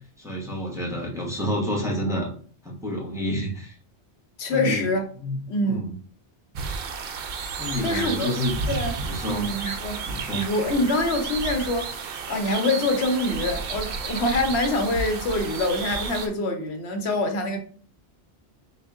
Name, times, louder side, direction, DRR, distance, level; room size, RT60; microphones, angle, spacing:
voice 1, 0.2-2.3 2.6-3.7 4.5-4.9 5.2-5.4 5.6-5.9 7.6-8.5 9.0-9.4 10.1-10.4, left 1 dB, 5° right, 0.9 m, -29 dB
voice 2, 4.4-5.0 5.5-5.8 7.8-8.3 8.7-10.0 10.3-17.6, left 2 dB, 80° left, 1.0 m, -25 dB
sound 1, 6.5-16.3, right 5 dB, 65° right, 0.7 m, -32 dB
3.5 x 2.5 x 3.5 m
omnidirectional pair, 1.1 m